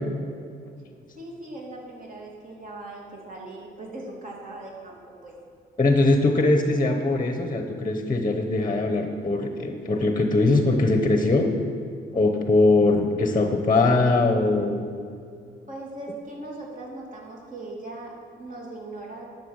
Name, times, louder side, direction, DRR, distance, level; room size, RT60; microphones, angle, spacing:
voice 1, 1.2-5.3 15.7-19.2, right 2 dB, 40° right, -2 dB, 2.8 m, -39 dB
voice 2, 5.8-11.5 12.1-14.8, left 2 dB, 20° left, 5 dB, 1.0 m, -21 dB
11.5 x 6.7 x 6.5 m, 2.3 s
cardioid pair, 90°, 20 cm